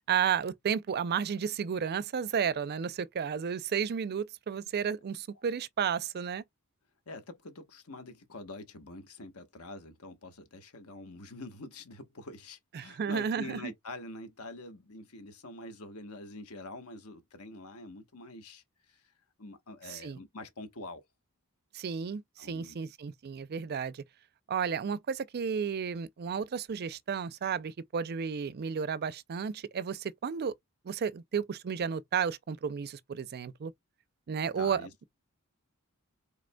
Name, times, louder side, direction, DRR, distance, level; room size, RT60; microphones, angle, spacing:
voice 1, 0.1-6.4 12.7-13.7 19.9-20.2 21.7-24.0 24.5-30.5 30.8-33.7 34.3-35.0, right 7 dB, 45° right, 0.4 m, -32 dB
voice 2, 7.1-19.0 19.4-21.0 22.0-22.1 22.4-22.8 34.6-35.0, left 2 dB, 80° left, 1.2 m, -45 dB
5.0 x 3.9 x 2.2 m
head